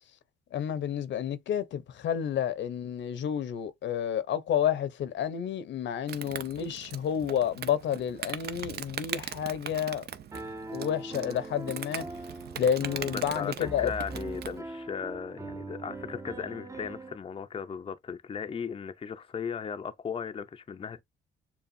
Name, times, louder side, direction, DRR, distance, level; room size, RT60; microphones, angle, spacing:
voice 1, 0.5-10.0 10.7-12.0 12.6-13.9, left 9 dB, 70° left, 0.8 m, -30 dB
Insect, 6.1-14.6, right 9 dB, 55° right, 0.6 m, -41 dB
Piano, 10.3-17.2, right 2 dB, 15° right, 0.6 m, -41 dB
voice 2, 13.1-13.5 13.8-21.0, left 6 dB, 30° left, 0.5 m, -37 dB
7.0 x 2.4 x 2.6 m
cardioid pair, 90°, 20 cm